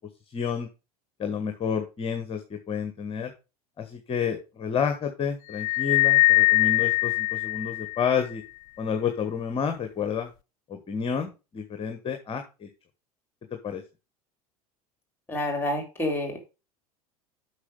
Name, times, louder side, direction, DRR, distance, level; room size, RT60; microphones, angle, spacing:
voice 1, 0.3-0.7 1.2-3.3 3.8-8.4 8.8-10.3 10.7-12.7 13.5-13.8, left 7 dB, 30° left, 6 dB, 1.4 m, -30 dB
sound 1, 5.5-8.2, left 21 dB, 55° left, 0.4 m, -22 dB
voice 2, 15.3-16.5, left 1 dB, 10° left, 4 dB, 4.4 m, -28 dB
8.2 x 6.3 x 5.3 m, 0.30 s
figure-of-eight pair, 75°, 20 cm